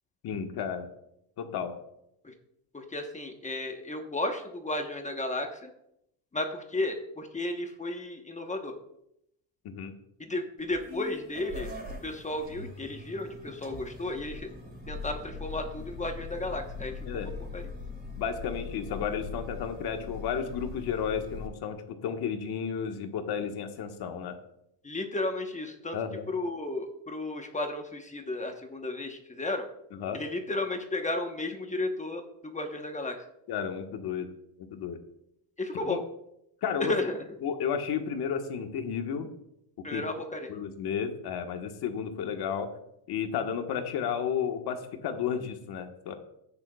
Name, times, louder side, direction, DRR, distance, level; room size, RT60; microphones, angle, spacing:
voice 1, 0.2-0.9 1.4-1.7 9.6-9.9 17.1-17.3 18.1-21.8 22.0-24.4 25.9-26.2 29.9-30.2 33.5-34.3 34.7-35.0 35.9-36.0 36.6-36.9 37.4-39.3 39.9-40.0 40.5-42.7 43.1-46.1, left 7 dB, 55° left, 5 dB, 1.4 m, -32 dB
voice 2, 2.7-5.7 6.3-8.7 10.2-11.7 12.0-14.5 14.9-17.6 24.8-26.0 26.3-29.6 30.1-33.2 35.6-36.0 36.8-37.3 39.8-40.5, left 2 dB, 15° left, 4 dB, 1.1 m, -33 dB
sound 1, 10.6-21.5, left 3 dB, 20° right, 3.1 m, -41 dB
12.5 x 9.5 x 2.3 m, 0.79 s
supercardioid pair, 105°, 46 cm